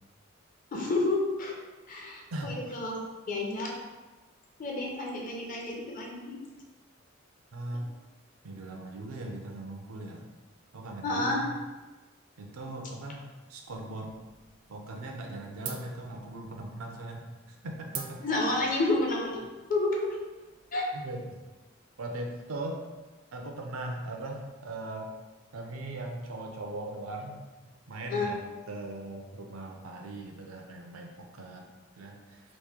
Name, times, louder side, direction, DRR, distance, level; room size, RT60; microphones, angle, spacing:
voice 1, 0.7-1.5 1.9-3.0 3.3-3.7 4.6-6.4 11.0-11.4 18.2-19.4 19.7-20.2 20.7-20.9 28.1-28.3, left 2 dB, 40° left, -1 dB, 0.6 m, -30 dB
voice 2, 7.5-7.9 8.4-10.3 10.7-11.5 12.4-14.1 14.7-18.2 20.9-21.4 22.0-22.8 23.3-25.1 25.5-27.4 27.9-28.4 28.7-31.7 32.0-32.4, right 2 dB, 85° right, 2 dB, 0.5 m, -39 dB
sound 1, 13.7-14.6 14.9-15.3 15.6-20.8, right 6 dB, 40° right, 0.4 m, -45 dB
3.0 x 2.6 x 3.6 m, 1.2 s
head